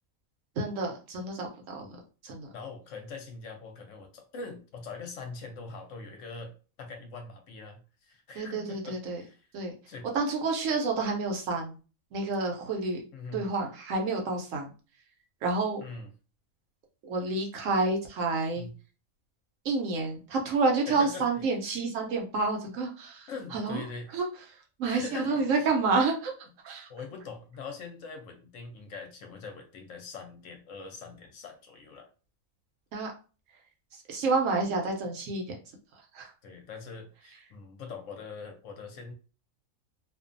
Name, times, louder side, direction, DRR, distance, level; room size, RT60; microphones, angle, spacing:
voice 1, 0.6-1.9 2.2-2.5 8.4-9.2 9.5-9.7 10.1-11.8 12.1-13.0 13.3-14.7 15.4-15.8 17.0-18.7 19.6-23.8 24.1-24.3 24.8-26.3 26.6-26.9 32.9-33.1 34.1-35.6 36.1-36.3, right 3 dB, 70° right, 2 dB, 0.9 m, -29 dB
voice 2, 2.5-6.5 6.8-9.5 9.9-10.1 13.1-13.5 15.8-16.1 18.6-18.7 20.9-21.3 23.3-24.1 24.8-25.7 26.9-32.1 36.4-39.1, left 4 dB, 70° left, 5 dB, 0.9 m, -43 dB
2.5 x 2.2 x 2.4 m, 0.35 s
omnidirectional pair, 1.5 m